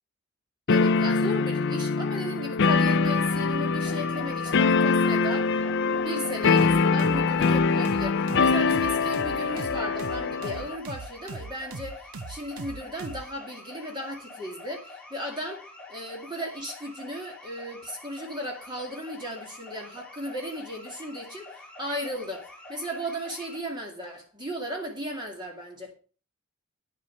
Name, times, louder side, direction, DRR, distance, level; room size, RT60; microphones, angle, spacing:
sound 1, 0.7-10.8, left 4 dB, 55° left, 0.5 m, -23 dB
voice 1, 0.7-5.6 5.9-25.9, equal, 20° right, 2.2 m, -36 dB
sound 2, 3.8-23.6, left 2 dB, 5° left, 2.8 m, -46 dB
sound 3, 6.6-13.3, right 4 dB, 80° right, 0.7 m, -39 dB
10.0 x 7.4 x 5.7 m
head